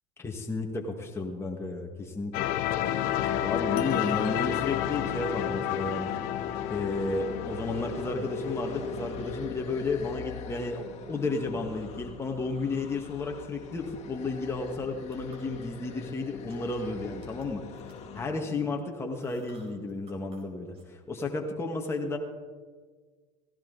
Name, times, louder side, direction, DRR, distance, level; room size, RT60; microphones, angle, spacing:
voice 1, 0.2-2.5 3.4-6.1 6.7-17.6 18.1-22.2, left 3 dB, 15° left, 1 dB, 1.9 m, -33 dB
sound 1, 2.3-9.1, left 12 dB, 65° left, 1.0 m, -31 dB
sound 2, 2.4-18.3, left 5 dB, 40° left, 2.2 m, -40 dB
sound 3, 14.8-16.0 16.4-16.8 17.2-20.4 20.7-20.8, equal, 35° right, 5.0 m, -54 dB
17.0 x 16.0 x 4.1 m, 1.5 s
hypercardioid pair, 95°, 16 cm